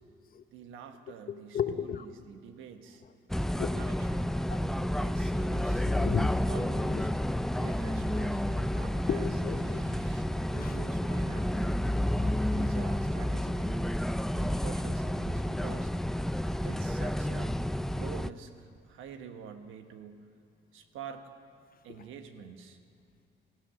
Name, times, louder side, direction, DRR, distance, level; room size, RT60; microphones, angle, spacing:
voice 1, 0.5-3.0 3.5-4.3 5.0-5.9 6.5-7.1 7.6-9.3 10.5-11.8 12.1-13.9 14.3-15.9 16.6-20.3 20.7-21.3 21.8-22.8, right 7 dB, 90° right, 7 dB, 1.2 m, -47 dB
voice 2, 1.3-2.1 3.6-3.7 4.5-4.9 5.9-6.4 9.1-9.8 10.6-10.8, left 8 dB, 45° left, 11 dB, 0.8 m, -34 dB
sound 1, 3.3-18.3, left 1 dB, ahead, 0.3 m, -30 dB
sound 2, 6.7-10.2, right 5 dB, 70° right, 1.2 m, -54 dB
16.0 x 14.0 x 6.4 m, 2.5 s
cardioid pair, 90°, 20 cm